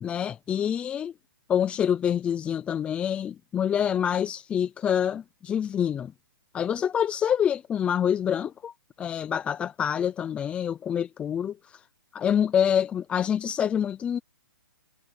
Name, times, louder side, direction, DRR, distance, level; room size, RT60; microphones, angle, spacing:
voice 1, 0.0-1.1 1.5-6.1 6.5-8.7 9.0-11.8 12.1-14.2, left 8 dB, 10° left, 0.5 m, -26 dB
hypercardioid pair, 155°, 12 cm